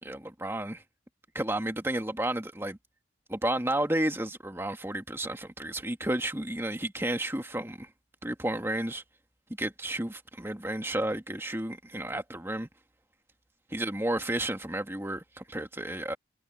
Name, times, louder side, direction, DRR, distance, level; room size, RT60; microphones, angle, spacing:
voice 1, 0.0-0.8 1.3-2.8 3.3-7.9 8.2-9.0 9.6-12.7 13.7-16.2, right 1 dB, 15° right, 1.9 m, -32 dB
head